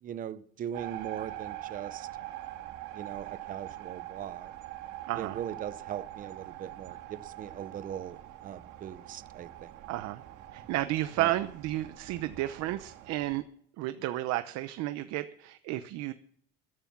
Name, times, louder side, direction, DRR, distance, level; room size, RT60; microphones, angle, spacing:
voice 1, 0.0-2.1 2.9-4.5 5.2-9.8 11.2-11.3, right 9 dB, 30° right, 0.6 m, -40 dB
sound 1, 0.7-13.4, right 14 dB, 80° right, 2.0 m, -44 dB
voice 2, 5.1-5.4 9.9-10.2 10.5-13.4 13.8-16.1, right 15 dB, 65° right, 0.8 m, -32 dB
14.5 x 11.0 x 6.0 m
cardioid pair, 165°, 29 cm